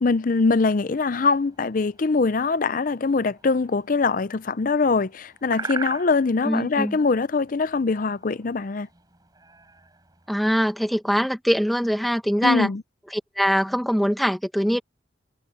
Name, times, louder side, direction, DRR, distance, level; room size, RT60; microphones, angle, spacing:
voice 1, 0.0-8.9 12.4-12.8, left 4 dB, 45° left, 0.5 m, -23 dB
sound 1, 0.5-10.5, right 3 dB, 20° right, 4.4 m, -41 dB
voice 2, 6.4-7.0 10.3-12.7 13.1-14.8, equal, ahead, 1.6 m, -23 dB
head